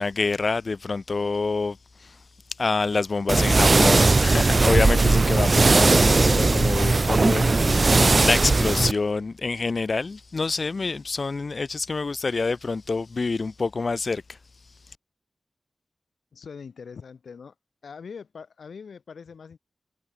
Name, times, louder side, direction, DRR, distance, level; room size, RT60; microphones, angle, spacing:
voice 1, 0.0-15.0, left 4 dB, 55° left, 1.4 m, -27 dB
sound 1, 3.3-8.9, right 3 dB, 45° right, 0.8 m, -18 dB
voice 2, 16.3-17.5 17.8-19.6, left 6 dB, 90° left, 4.7 m, -42 dB
cardioid pair, 55°, 0 cm